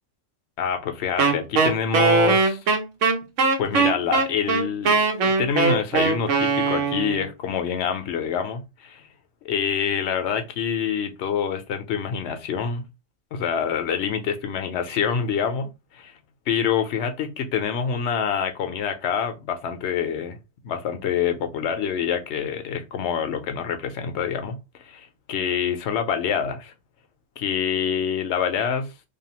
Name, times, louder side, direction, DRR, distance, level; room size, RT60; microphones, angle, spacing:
voice 1, 0.6-2.6 3.6-9.1 9.4-12.8 13.3-16.1 16.5-20.4 20.6-26.7 27.4-28.9, left 7 dB, 65° left, 0.8 m, -26 dB
Wind instrument woodwind instrument, 1.2-7.3, right 4 dB, 75° right, 1.0 m, -20 dB
2.6 x 2.4 x 2.8 m
omnidirectional pair, 1.3 m